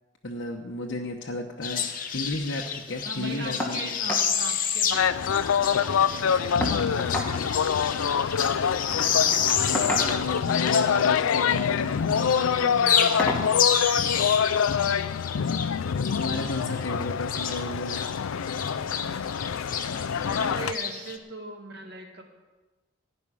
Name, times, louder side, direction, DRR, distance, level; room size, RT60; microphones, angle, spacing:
voice 1, 0.2-1.9 2.1-3.9 9.6-12.8 15.8-18.1, left 2 dB, 60° left, 0 dB, 1.0 m, -33 dB
sound 1, 1.6-11.8 12.1-18.2 18.4-21.2, left 7 dB, 40° left, 1.0 m, -30 dB
voice 2, 3.0-9.8 12.6-14.7 20.1-22.2, right 2 dB, 50° right, 3 dB, 1.8 m, -41 dB
sound 2, 3.6-3.8 4.1-4.3 4.7-4.8 5.0-5.7 6.6-7.3 8.6-8.8 9.7-10.4 11.4-11.8 12.2-12.4 13.2-13.5 14.8-14.9 15.4-15.5, equal, 5° left, 1.8 m, -31 dB
sound 3, 4.9-20.7, left 7 dB, 80° left, 0.4 m, -26 dB
16.0 x 5.4 x 9.9 m, 1.2 s
head